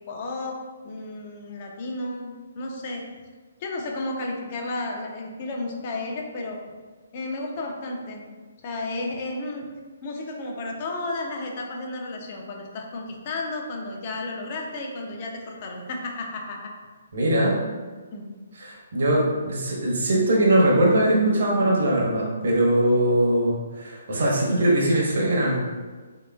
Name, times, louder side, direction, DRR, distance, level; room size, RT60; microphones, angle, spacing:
voice 1, 0.1-0.6 0.8-3.0 3.6-6.6 7.1-8.2 8.6-9.6 10.0-16.7 18.1-18.2, left 2 dB, 40° left, 1 dB, 0.6 m, -32 dB
voice 2, 17.1-17.6 18.6-25.6, right 1 dB, 60° right, -3 dB, 0.9 m, -21 dB
3.4 x 2.9 x 2.3 m, 1.4 s
figure-of-eight pair, 135°, 0 cm